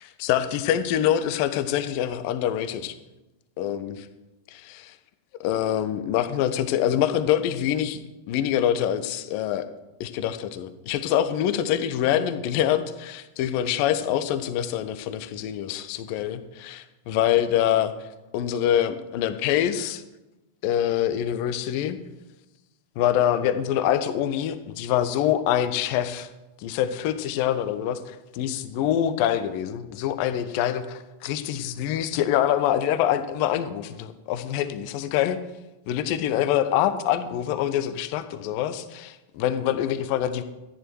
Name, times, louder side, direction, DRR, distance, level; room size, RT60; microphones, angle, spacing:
voice 1, 0.0-2.9 3.6-4.0 4.6-5.0 5.4-8.0 8.3-9.7 10.0-18.1 18.3-20.0 20.6-22.0 22.9-26.3 26.6-35.4 35.9-40.4, left 11 dB, 45° left, 12 dB, 1.0 m, -25 dB
14.0 x 10.0 x 4.7 m, 1.0 s
figure-of-eight pair, 90°, 0 cm